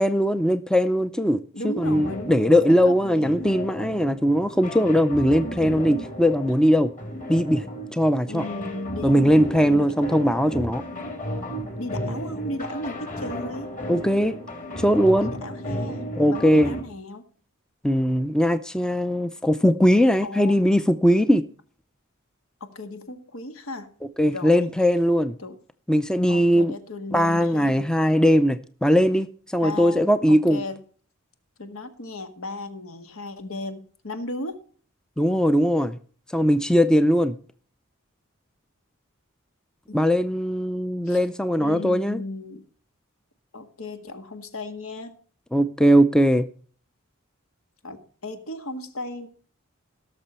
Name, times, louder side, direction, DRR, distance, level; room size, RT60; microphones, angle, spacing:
voice 1, 0.0-6.9 7.3-8.4 9.0-10.8 13.9-14.4 14.8-15.3 16.2-16.7 17.8-21.4 24.2-25.4 25.9-26.7 27.1-29.3 29.5-30.6 35.2-36.0 36.3-37.4 39.9-42.2 45.5-46.5, equal, 5° left, 0.4 m, -20 dB
voice 2, 1.5-3.5 8.3-10.2 11.8-13.7 15.2-17.2 20.2-20.6 22.6-23.9 24.2-24.7 25.4-25.6 26.3-27.9 29.6-30.8 31.6-34.6 39.9-40.0 41.1-41.2 41.6-42.6 43.5-45.2 47.8-49.3, left 2 dB, 80° left, 1.7 m, -35 dB
sound 1, 1.8-16.8, equal, 40° left, 2.8 m, -34 dB
17.5 x 6.8 x 4.3 m
head